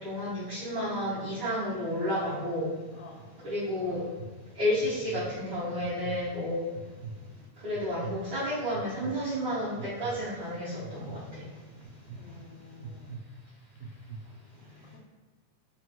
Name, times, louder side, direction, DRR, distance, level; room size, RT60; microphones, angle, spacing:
voice 1, 0.0-2.7 3.4-4.0 4.6-6.6 7.6-11.2, equal, 55° right, -13 dB, 1.5 m, -31 dB
sound 1, 2.9-3.3 3.8-4.3 4.8-5.3 5.8-6.2 6.7-7.2 7.7-8.2 8.7-9.1 9.8-10.2 10.8-11.2 11.8-12.2 12.8-13.2 13.8-14.2, right 5 dB, 80° right, 1.7 m, -42 dB
voice 2, 12.2-13.2 14.9-15.0, left 4 dB, 80° left, 1 dB, 2.0 m, -50 dB
5.9 x 2.2 x 2.9 m, 1.3 s
omnidirectional pair, 3.7 m